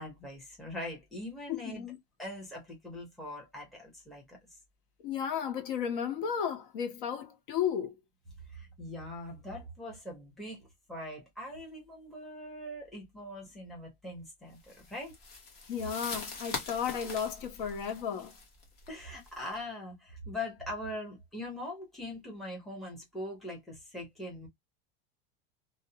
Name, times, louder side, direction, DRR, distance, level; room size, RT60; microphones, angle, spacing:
voice 1, 0.0-1.8 2.2-4.4 8.5-10.6 10.9-15.2 18.9-24.5, left 1 dB, ahead, 0.7 m, -42 dB
voice 2, 1.5-2.0 5.0-7.9 15.7-18.3, left 8 dB, 65° left, 0.9 m, -34 dB
sound 1, 14.6-19.5, left 4 dB, 35° left, 0.9 m, -43 dB
2.5 x 2.0 x 2.7 m
supercardioid pair, 170°, 29 cm